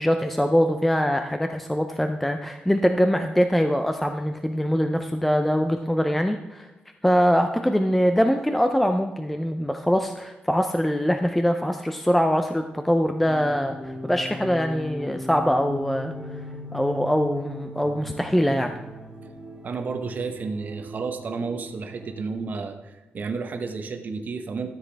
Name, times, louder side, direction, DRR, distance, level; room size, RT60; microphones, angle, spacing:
voice 1, 0.0-6.7 7.0-16.1 16.7-18.7, equal, 5° left, 6 dB, 0.4 m, -23 dB
sound 1, 13.2-22.4, left 1 dB, 20° right, 1.6 m, -39 dB
voice 2, 19.6-24.7, right 4 dB, 50° right, 4 dB, 0.9 m, -31 dB
13.5 x 7.3 x 3.4 m, 1.1 s
wide cardioid pair, 140°, 4 cm